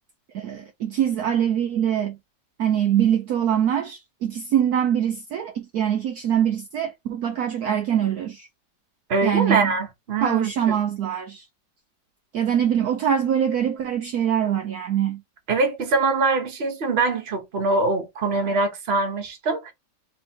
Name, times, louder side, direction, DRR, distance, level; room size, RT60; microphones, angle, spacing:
voice 1, 0.3-2.2 2.6-8.5 9.2-9.7 10.2-11.4 12.3-15.2, right 9 dB, 65° right, 1.1 m, -23 dB
voice 2, 9.1-10.5 15.5-19.7, right 3 dB, 40° right, 1.2 m, -23 dB
3.9 x 3.1 x 4.2 m
omnidirectional pair, 2.0 m